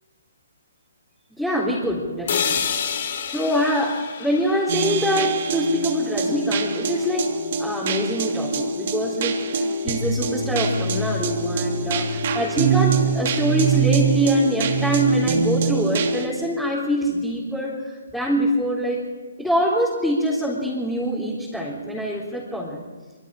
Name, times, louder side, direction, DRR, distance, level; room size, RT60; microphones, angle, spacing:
voice 1, 1.4-2.6 3.3-7.3 7.6-19.0 19.4-22.8, equal, ahead, -5 dB, 3.8 m, -24 dB
sound 1, 2.3-6.3, left 7 dB, 55° left, 3.4 m, -29 dB
sound 2, 4.7-16.3, right 5 dB, 50° right, 2.6 m, -24 dB
25.5 x 25.0 x 5.0 m, 1.4 s
hypercardioid pair, 140°, 0 cm